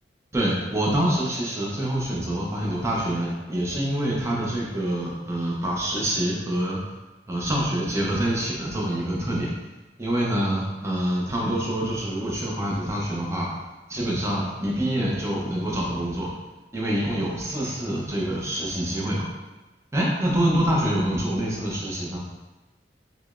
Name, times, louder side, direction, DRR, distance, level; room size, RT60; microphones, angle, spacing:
voice 1, 0.3-6.8 7.3-9.5 10.0-13.5 13.9-16.3 16.7-19.3 19.9-22.2, right 1 dB, 15° right, -4 dB, 0.5 m, -26 dB
4.7 x 2.0 x 2.4 m, 1.1 s
head